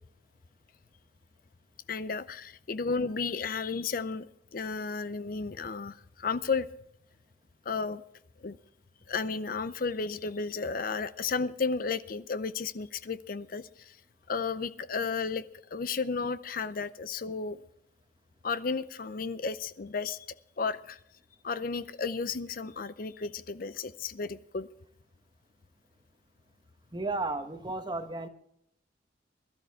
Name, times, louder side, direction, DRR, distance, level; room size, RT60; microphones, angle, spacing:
voice 1, 1.9-4.3 4.5-6.7 7.7-8.0 8.4-8.6 9.1-14.0 14.3-15.5 15.7-17.6 18.4-20.3 20.6-21.0 21.4-24.7, left 4 dB, 50° left, 14 dB, 0.5 m, -33 dB
voice 2, 26.9-28.3, right 2 dB, 25° right, 8 dB, 1.1 m, -33 dB
21.5 x 12.5 x 3.6 m, 0.72 s
head